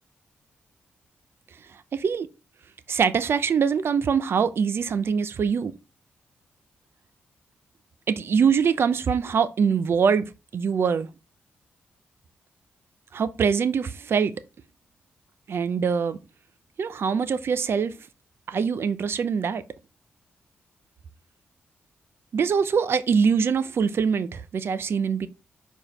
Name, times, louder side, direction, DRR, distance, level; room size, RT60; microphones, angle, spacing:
voice 1, 1.7-2.3 2.9-5.8 8.1-11.1 13.1-14.3 15.5-16.2 16.8-17.9 18.5-19.6 22.3-25.3, right 6 dB, 65° right, 0.7 m, -23 dB
4.9 x 4.6 x 5.4 m
cardioid pair, 60°, 4 cm